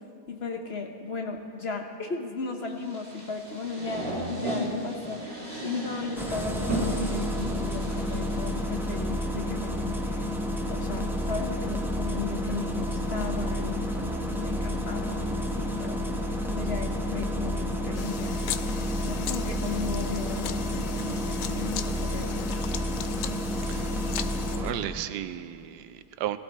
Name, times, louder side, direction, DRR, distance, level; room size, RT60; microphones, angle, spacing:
voice 1, 0.3-10.3 10.7-16.0 16.6-18.4 19.0-22.5, left 4 dB, 45° left, 3 dB, 1.0 m, -36 dB
sound 1, 2.8-8.9, right 1 dB, 40° right, 3.3 m, -35 dB
Engine starting, 6.2-24.7, left 1 dB, ahead, 0.7 m, -30 dB
sound 2, 17.9-24.6, left 11 dB, 90° left, 1.2 m, -38 dB
voice 2, 24.4-26.4, right 12 dB, 85° right, 12 dB, 1.2 m, -34 dB
19.0 x 14.5 x 4.2 m, 2.6 s
omnidirectional pair, 1.7 m